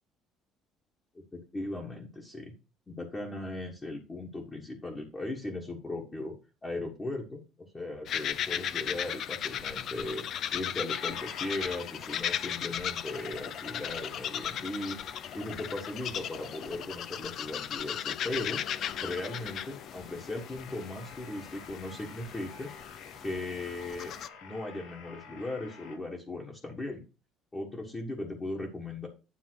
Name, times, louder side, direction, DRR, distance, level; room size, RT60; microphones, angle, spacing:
voice 1, 1.1-2.5 2.9-6.3 6.6-10.2 10.5-15.0 15.3-18.6 19.0-22.7 23.2-24.1 24.4-27.0 27.5-29.1, left 2 dB, 15° left, -1 dB, 1.4 m, -38 dB
sound 1, 8.1-24.3, left 9 dB, 45° left, 0.5 m, -37 dB
sound 2, 8.7-26.0, left 5 dB, 75° left, 3.5 m, -51 dB
9.9 x 3.6 x 6.2 m, 0.30 s
cardioid pair, 165°, 0 cm